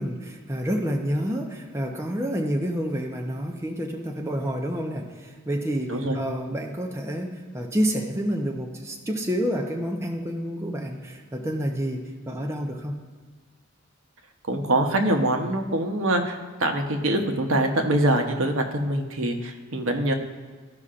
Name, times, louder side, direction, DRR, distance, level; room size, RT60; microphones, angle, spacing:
voice 1, 0.0-13.0, equal, 15° right, 1 dB, 0.7 m, -29 dB
voice 2, 14.5-20.1, right 1 dB, 80° right, 4 dB, 0.9 m, -24 dB
14.0 x 5.5 x 2.5 m, 1.5 s
head